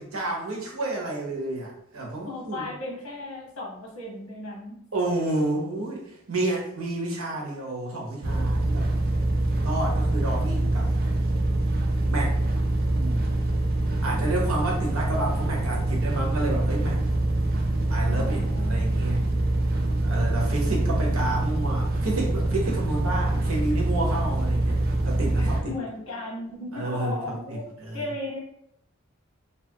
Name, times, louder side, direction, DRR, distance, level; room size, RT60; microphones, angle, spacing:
voice 1, 0.0-2.6 4.9-8.9 9.6-10.9 12.1-12.4 12.9-13.3 14.0-17.0 17.9-19.3 20.0-25.7 26.7-28.0, right 2 dB, 80° right, -1 dB, 0.8 m, -30 dB
voice 2, 2.2-4.8 18.1-18.9 25.3-27.6 27.9-28.4, left 2 dB, 85° left, -3 dB, 1.0 m, -36 dB
sound 1, 8.2-25.6, right 2 dB, 45° right, 0.4 m, -25 dB
2.7 x 2.3 x 2.7 m, 0.75 s
head